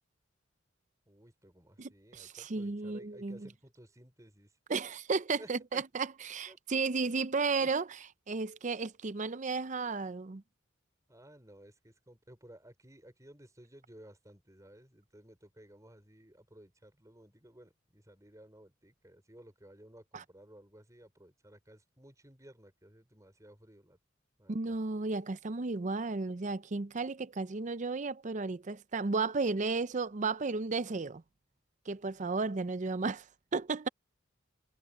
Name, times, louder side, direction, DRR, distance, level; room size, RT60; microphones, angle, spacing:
voice 1, 1.1-4.5 5.4-5.8 6.5-6.8 7.6-7.7 11.1-24.0 24.4-24.7, right 1 dB, 15° right, 4.9 m, -56 dB
voice 2, 1.8-3.5 4.7-7.9 8.3-10.4 20.1-20.2 24.5-31.2 31.9-33.2 33.5-33.9, right 4 dB, 40° right, 0.6 m, -33 dB
head